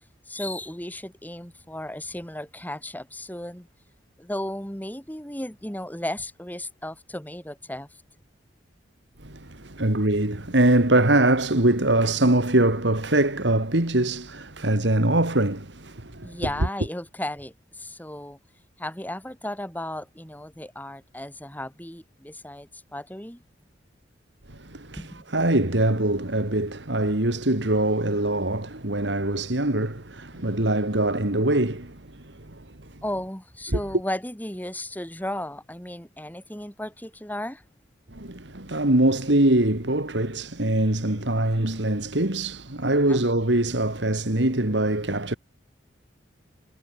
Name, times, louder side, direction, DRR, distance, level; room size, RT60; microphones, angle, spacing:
voice 1, 0.3-3.7 4.2-8.0 16.2-18.4 18.8-23.4 25.0-25.2 30.3-30.6 33.0-37.6 43.1-43.3, left 1 dB, 10° left, 4.3 m, -35 dB
voice 2, 9.2-16.4 24.5-33.0 33.7-33.8 38.1-45.4, right 1 dB, 70° right, 2.7 m, -23 dB
head